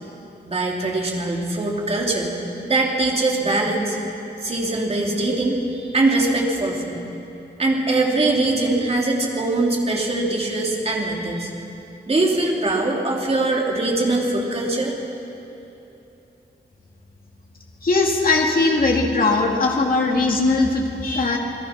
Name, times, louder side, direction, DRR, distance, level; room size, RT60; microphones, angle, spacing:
voice 1, 0.5-2.3 2.6-4.0 4.4-7.0 7.6-11.5 12.1-14.9, right 2 dB, 30° right, -1 dB, 3.3 m, -22 dB
voice 2, 17.8-21.4, left 3 dB, 50° left, 0 dB, 2.8 m, -19 dB
29.5 x 20.0 x 6.1 m, 2.9 s
wide cardioid pair, 160°, 19 cm